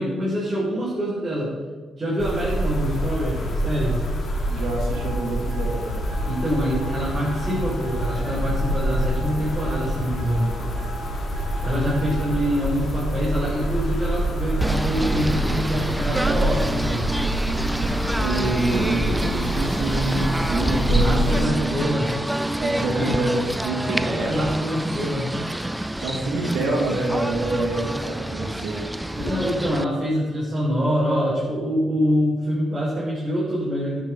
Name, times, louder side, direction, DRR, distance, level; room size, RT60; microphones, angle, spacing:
voice 1, 0.0-1.5 2.0-4.0 6.2-10.5 11.6-17.1 20.9-22.1 22.9-23.1 24.0-25.3 29.2-34.0, equal, 35° right, -7 dB, 3.7 m, -25 dB
sound 1, 2.2-21.5, equal, 55° left, 2.3 m, -26 dB
voice 2, 4.5-6.0 18.2-21.8 22.6-24.5 26.0-28.8, right 2 dB, 85° right, -1 dB, 2.4 m, -26 dB
sound 2, 4.9-12.5, left 1 dB, 60° right, 2.9 m, -41 dB
Singing / Bird, 14.6-29.8, right 1 dB, 5° right, 0.4 m, -27 dB
10.5 x 6.8 x 5.4 m, 1.4 s
cardioid pair, 80°, 0 cm